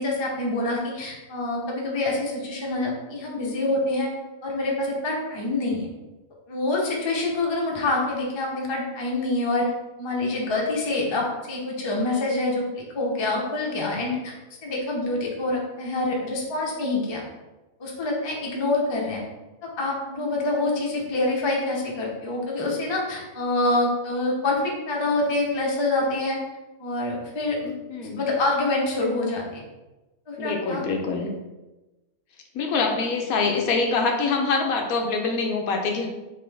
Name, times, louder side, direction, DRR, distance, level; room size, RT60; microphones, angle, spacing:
voice 1, 0.0-4.1 4.4-5.9 6.5-9.7 10.0-14.3 14.6-17.2 17.8-19.2 19.6-26.4 26.8-27.7 28.1-29.6 30.3-30.8, left 2 dB, 30° left, -2 dB, 0.5 m, -26 dB
voice 2, 30.4-31.3 32.5-36.1, left 4 dB, 80° left, 3 dB, 1.1 m, -24 dB
3.8 x 3.3 x 3.3 m, 1.1 s
omnidirectional pair, 1.5 m